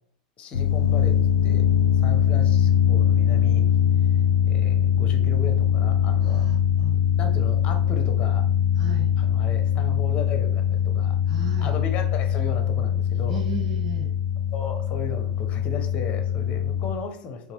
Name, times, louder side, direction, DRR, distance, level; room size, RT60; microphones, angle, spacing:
voice 1, 0.4-1.2 1.4-1.6 1.9-3.7 4.4-6.5 7.2-8.4 9.2-11.2 11.6-13.4 14.5-17.5, left 5 dB, 30° left, 5 dB, 0.7 m, -35 dB
sound 1, 0.5-16.9, left 9 dB, 70° left, 0.4 m, -22 dB
voice 2, 6.2-7.0 8.7-9.1 11.3-11.7 13.3-14.1, right 3 dB, 65° right, -1 dB, 1.5 m, -35 dB
4.0 x 2.4 x 3.9 m, 0.65 s
figure-of-eight pair, 90°, 4 cm